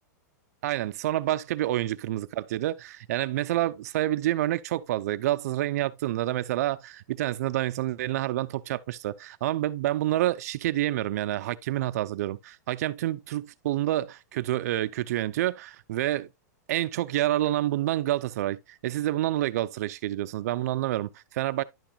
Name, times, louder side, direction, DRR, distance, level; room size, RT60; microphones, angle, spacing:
voice 1, 0.6-16.3 16.7-21.6, right 14 dB, 60° right, 0.6 m, -28 dB
11.0 x 5.9 x 2.4 m
supercardioid pair, 155°, 10 cm